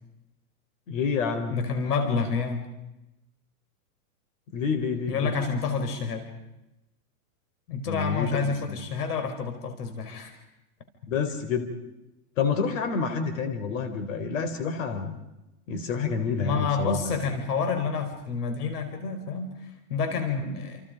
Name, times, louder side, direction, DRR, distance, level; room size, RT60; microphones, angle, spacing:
voice 1, 0.9-1.6 4.5-5.4 7.8-8.8 11.1-11.7 12.4-15.2 15.7-17.2, left 5 dB, 55° left, 8 dB, 4.0 m, -28 dB
voice 2, 1.5-2.6 5.1-6.3 7.7-10.4 16.4-20.8, left 5 dB, 80° left, 6 dB, 5.2 m, -29 dB
30.0 x 29.0 x 5.2 m, 0.96 s
supercardioid pair, 175°, 46 cm